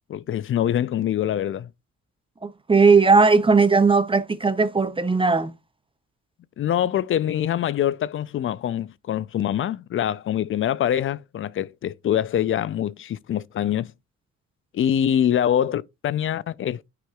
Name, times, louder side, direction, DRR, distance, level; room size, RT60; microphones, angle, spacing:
voice 1, 0.1-1.7 6.6-13.9 14.7-16.9, left 10 dB, 45° left, 0.4 m, -24 dB
voice 2, 2.4-5.5, right 4 dB, 20° right, 0.5 m, -18 dB
9.1 x 4.9 x 2.3 m
cardioid pair, 90°, 30 cm